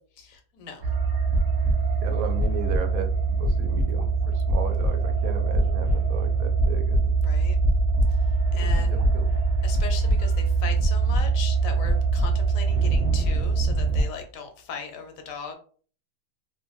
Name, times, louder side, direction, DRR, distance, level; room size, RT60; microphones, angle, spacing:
voice 1, 0.2-0.8 7.1-7.6 8.5-9.0 9.6-15.6, left 5 dB, 75° left, 5 dB, 1.0 m, -38 dB
sound 1, 0.8-14.0, right 3 dB, 45° right, 0.5 m, -23 dB
voice 2, 2.0-4.1 4.3-7.1 8.5-9.2, right 6 dB, 85° right, 6 dB, 1.0 m, -35 dB
2.5 x 2.2 x 3.0 m, 0.43 s
omnidirectional pair, 1.4 m